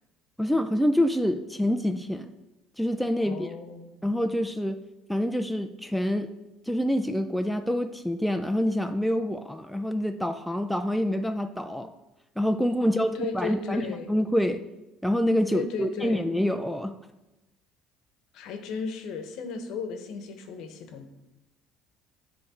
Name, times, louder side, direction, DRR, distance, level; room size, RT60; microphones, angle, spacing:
voice 1, 0.4-2.3 2.8-3.5 4.0-4.8 5.1-6.3 6.7-11.9 12.4-14.6 15.0-16.9, equal, ahead, 7 dB, 0.3 m, -26 dB
voice 2, 3.2-3.9 12.8-14.1 15.5-16.3 18.3-21.1, left 5 dB, 65° left, 7 dB, 0.9 m, -35 dB
9.8 x 3.3 x 4.2 m, 1.0 s
cardioid pair, 115°, 0 cm